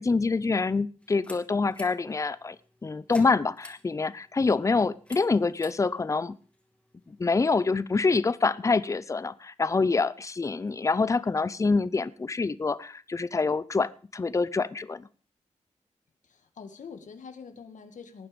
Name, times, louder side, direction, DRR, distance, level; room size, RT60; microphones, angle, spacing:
voice 1, 0.0-2.6 2.8-6.3 7.1-15.1, left 4 dB, 25° left, 0.6 m, -26 dB
sound 1, 1.0-7.3, left 1 dB, 10° left, 2.7 m, -53 dB
voice 2, 16.2-18.3, left 5 dB, 90° left, 2.0 m, -45 dB
18.5 x 9.3 x 5.2 m
wide cardioid pair, 140°, 12 cm